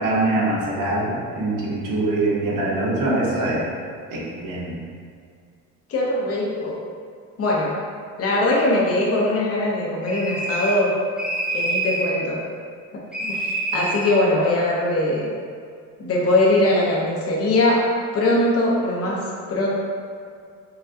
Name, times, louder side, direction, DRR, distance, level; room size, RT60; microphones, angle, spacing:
voice 1, 0.0-3.6 4.1-4.8, right 2 dB, 75° right, -5 dB, 1.1 m, -23 dB
voice 2, 5.9-6.7 7.4-7.7 8.2-10.9 11.5-12.4 13.2-15.3 16.0-17.8 18.1-19.2 19.5-19.7, left 1 dB, 50° left, -4 dB, 0.9 m, -21 dB
sound 1, 10.0-10.9 11.2-12.1 13.1-14.2, right 2 dB, 5° right, 0.4 m, -26 dB
5.8 x 2.2 x 2.8 m, 2.2 s
cardioid pair, 130°, 31 cm